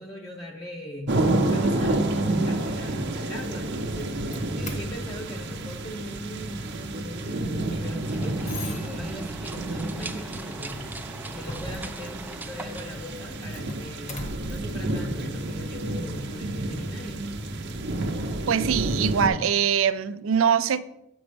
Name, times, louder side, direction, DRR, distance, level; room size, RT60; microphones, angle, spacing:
voice 1, 0.0-4.1 4.5-10.8 11.3-17.3, equal, 20° left, 0.7 m, -40 dB
sound 1, 1.1-19.3, right 2 dB, 60° right, 0.8 m, -29 dB
Doorbell, 3.2-16.4, left 1 dB, 35° left, 1.2 m, -44 dB
sound 2, 7.6-13.8, right 2 dB, 10° right, 0.4 m, -41 dB
voice 2, 18.5-20.8, right 8 dB, 80° right, 0.4 m, -23 dB
7.9 x 5.1 x 5.2 m
head